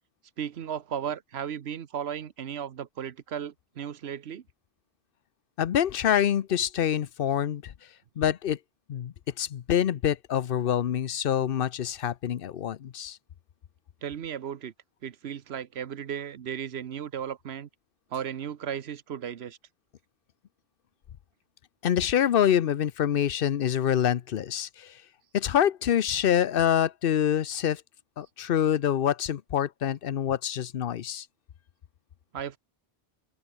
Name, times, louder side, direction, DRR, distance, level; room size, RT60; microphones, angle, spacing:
voice 1, 0.4-4.4 14.0-14.7 15.0-17.7 18.1-19.6 32.3-32.6, right 9 dB, 80° right, 1.2 m, -35 dB
voice 2, 5.6-7.7 8.2-8.6 8.9-13.2 21.8-24.9 25.3-27.8 28.2-31.3, left 9 dB, 65° left, 0.8 m, -26 dB
omnidirectional pair, 1.1 m